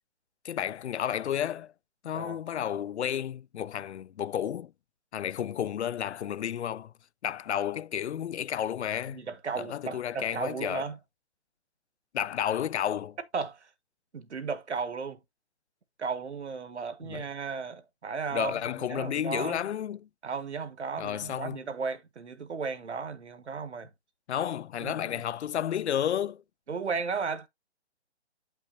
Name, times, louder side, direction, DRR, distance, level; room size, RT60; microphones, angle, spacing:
voice 1, 0.4-1.7 2.0-4.7 5.1-6.9 7.2-9.2 9.6-10.9 12.1-13.2 17.1-17.3 18.3-20.1 21.0-21.6 24.3-26.4, left 10 dB, 80° left, 0.5 m, -32 dB
voice 2, 9.1-11.0 13.3-13.7 14.1-15.2 16.0-19.6 20.2-23.9 24.8-25.2 26.7-27.5, right 5 dB, 90° right, 1.4 m, -35 dB
8.4 x 5.6 x 2.6 m
hypercardioid pair, 170°, 33 cm